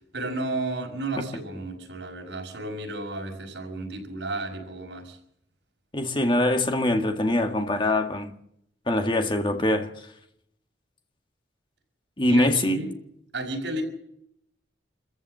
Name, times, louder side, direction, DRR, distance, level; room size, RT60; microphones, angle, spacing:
voice 1, 0.1-5.2 12.3-13.0 13.3-13.8, right 2 dB, 80° right, 5.7 m, -32 dB
voice 2, 5.9-8.3 8.9-9.9 12.2-12.8, left 1 dB, 25° left, 1.9 m, -23 dB
26.5 x 15.0 x 7.8 m
head